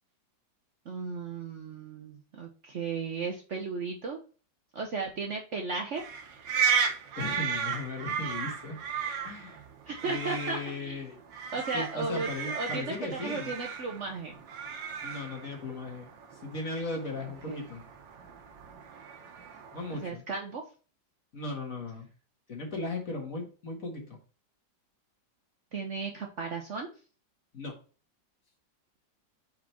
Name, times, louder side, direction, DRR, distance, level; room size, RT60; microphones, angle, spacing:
voice 1, 0.9-4.2 4.7-6.0 9.9-11.0 11.5-14.4 17.2-17.7 20.0-20.6 25.7-26.9, right 4 dB, 55° right, 2 dB, 0.9 m, -35 dB
sound 1, 5.9-20.0, right 6 dB, 85° right, 1.6 m, -35 dB
voice 2, 7.2-8.8 9.2-9.6 10.0-11.2 11.7-13.5 15.0-16.1 16.4-17.8 19.7-20.2 21.3-22.1 22.5-24.2 27.5-27.8, left 2 dB, 50° left, 1 dB, 2.0 m, -37 dB
4.9 x 4.7 x 4.3 m, 0.37 s
omnidirectional pair, 2.0 m